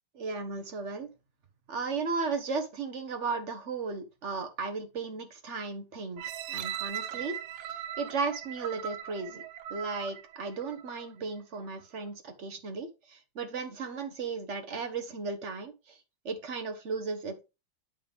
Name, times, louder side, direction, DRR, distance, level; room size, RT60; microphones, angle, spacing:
voice 1, 0.1-1.1 1.7-6.2 6.5-9.4 9.7-16.0 16.2-17.4, right 4 dB, 50° right, 7 dB, 0.9 m, -35 dB
sound 1, 6.2-11.1 11.7-11.8, right 10 dB, 75° right, 1.5 m, -39 dB
8.5 x 5.1 x 3.5 m, 0.26 s
omnidirectional pair, 2.3 m